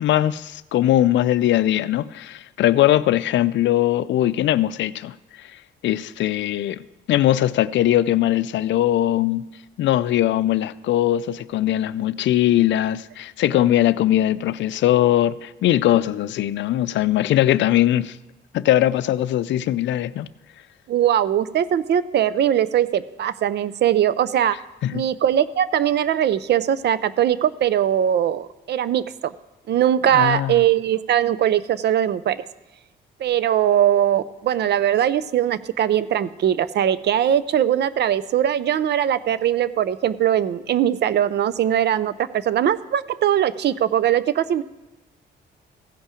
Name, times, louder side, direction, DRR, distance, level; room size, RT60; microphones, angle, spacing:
voice 1, 0.0-5.5 5.8-9.5 9.8-18.2 18.5-20.3 24.8-25.0 30.1-30.5, left 13 dB, 70° left, 0.4 m, -20 dB
voice 2, 20.9-24.6 24.9-29.3 29.7-32.4 33.2-44.6, right 10 dB, 60° right, 0.5 m, -20 dB
16.0 x 5.4 x 5.0 m
cardioid pair, 90°, 20 cm